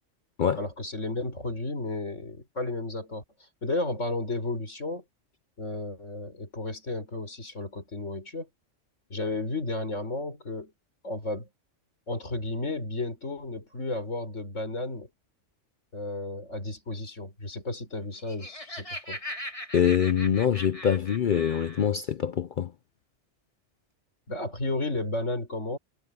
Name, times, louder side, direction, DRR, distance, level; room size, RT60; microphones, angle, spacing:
voice 1, 0.6-3.2 3.6-5.0 5.6-8.5 9.1-10.7 11.0-11.5 12.1-15.1 15.9-19.2 24.3-25.8, left 2 dB, 80° left, 5.4 m, -33 dB
Laughter, 18.0-21.9, left 1 dB, 25° left, 3.6 m, -40 dB
voice 2, 19.7-22.7, left 8 dB, 55° left, 0.6 m, -24 dB
omnidirectional pair, 1.3 m